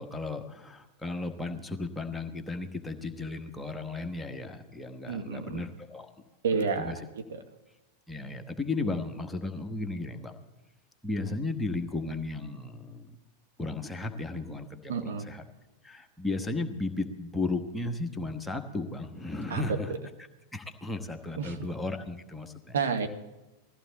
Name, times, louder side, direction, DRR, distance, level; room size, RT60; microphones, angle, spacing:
voice 1, 0.0-6.1 6.5-7.0 8.1-10.3 11.0-13.1 13.6-15.4 15.8-19.9 20.5-22.7, left 2 dB, 5° left, 5 dB, 1.4 m, -35 dB
voice 2, 5.1-5.6 6.4-7.4 14.9-15.3 19.5-19.8 21.4-21.7 22.7-23.1, right 5 dB, 60° right, 5 dB, 1.5 m, -30 dB
20.0 x 14.5 x 4.1 m, 1.0 s
figure-of-eight pair, 90°, 0 cm